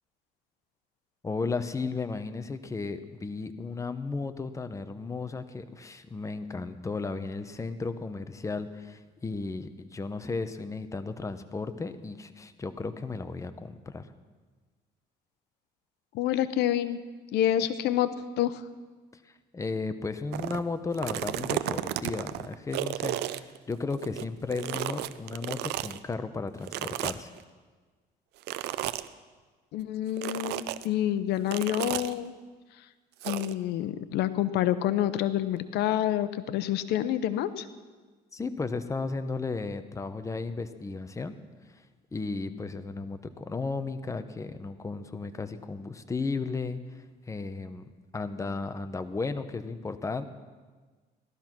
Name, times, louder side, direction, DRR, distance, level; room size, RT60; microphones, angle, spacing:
voice 1, 1.2-14.1 19.2-27.3 38.3-41.4 42.1-50.2, left 4 dB, 20° left, 10 dB, 0.9 m, -34 dB
voice 2, 16.1-17.0 17.3-18.6 29.7-32.3 33.3-37.7, left 11 dB, 85° left, 13 dB, 0.8 m, -28 dB
sound 1, 20.3-20.6 20.9-24.2 24.5-26.0 26.7-27.4 28.4-29.1 30.2-30.9 31.5-32.1 33.2-33.5, right 14 dB, 80° right, 0.6 m, -33 dB
17.5 x 12.5 x 6.1 m, 1.4 s
cardioid pair, 110°, 17 cm